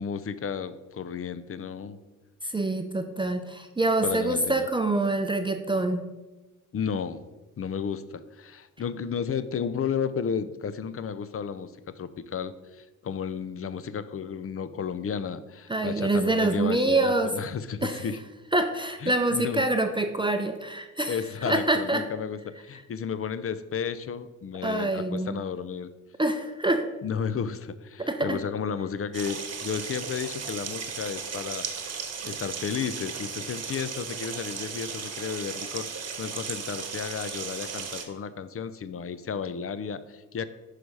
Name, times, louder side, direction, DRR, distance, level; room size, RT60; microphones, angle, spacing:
voice 1, 0.0-2.0 4.0-4.7 6.7-7.2 7.6-18.2 19.0-19.7 21.1-25.9 27.0-40.5, left 7 dB, 45° left, 14 dB, 0.5 m, -33 dB
voice 2, 2.4-6.1 15.7-17.3 17.8-18.1 18.5-21.2 21.5-22.0 24.6-25.3 26.2-26.9 28.0-28.4, right 2 dB, 15° right, 6 dB, 0.6 m, -26 dB
sound 1, 29.1-38.0, right 6 dB, 50° right, 1.1 m, -36 dB
6.0 x 4.9 x 5.4 m, 1.1 s
cardioid pair, 65°, 32 cm